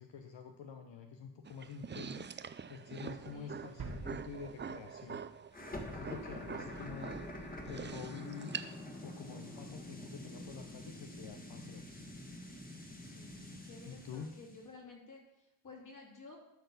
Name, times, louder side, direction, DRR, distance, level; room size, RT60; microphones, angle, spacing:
voice 1, 0.0-2.3 2.7-5.2 5.9-7.3 7.6-8.5 9.0-12.0 13.9-14.3, left 6 dB, 80° left, 5 dB, 0.9 m, -47 dB
sound 1, 1.4-14.3, right 6 dB, 25° right, 0.4 m, -47 dB
sound 2, 3.8-5.6 5.9-6.0, right 3 dB, 55° right, 1.7 m, -47 dB
sound 3, 5.5-14.6, left 1 dB, 20° left, 1.5 m, -47 dB
voice 2, 13.6-16.4, left 3 dB, 45° left, -1 dB, 2.9 m, -53 dB
12.5 x 4.2 x 6.8 m, 0.87 s
wide cardioid pair, 100°, 44 cm